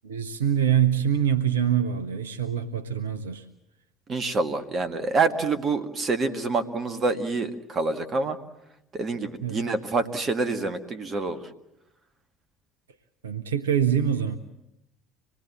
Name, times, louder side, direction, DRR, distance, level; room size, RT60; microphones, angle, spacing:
voice 1, 0.0-3.4 9.4-9.6 13.2-14.4, right 9 dB, 75° right, 8 dB, 0.9 m, -24 dB
voice 2, 4.1-8.4 8.9-11.4, right 3 dB, 35° right, 10 dB, 2.0 m, -27 dB
25.5 x 20.0 x 7.6 m, 0.84 s
figure-of-eight pair, 60°, 0 cm